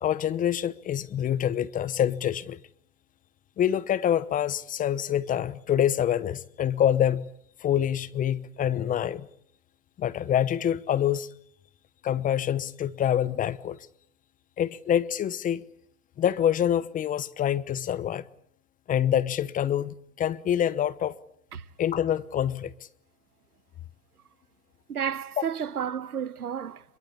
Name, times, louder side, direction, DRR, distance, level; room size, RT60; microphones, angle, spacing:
voice 1, 0.0-2.6 3.6-7.3 7.6-9.3 10.0-11.3 12.0-13.8 14.6-15.6 16.2-18.2 18.9-21.1 21.8-22.7 25.4-25.5, left 10 dB, 20° left, 1.0 m, -26 dB
voice 2, 24.9-26.8, right 8 dB, 85° right, 1.4 m, -31 dB
24.5 x 23.0 x 8.6 m
hypercardioid pair, 120°, 44 cm